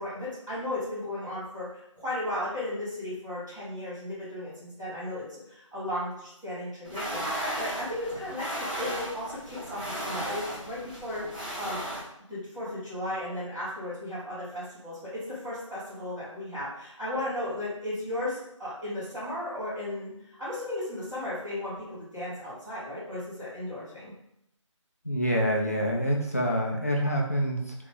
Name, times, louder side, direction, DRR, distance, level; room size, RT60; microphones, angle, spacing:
voice 1, 0.0-8.5 8.8-11.8 12.3-20.1 20.4-24.1, left 1 dB, ahead, -20 dB, 1.0 m, -35 dB
sound 1, 6.8-12.0, right 1 dB, 15° right, 0.7 m, -35 dB
voice 2, 25.0-27.7, equal, 30° left, -2 dB, 0.4 m, -26 dB
2.8 x 2.4 x 3.6 m, 0.77 s
figure-of-eight pair, 175°, 17 cm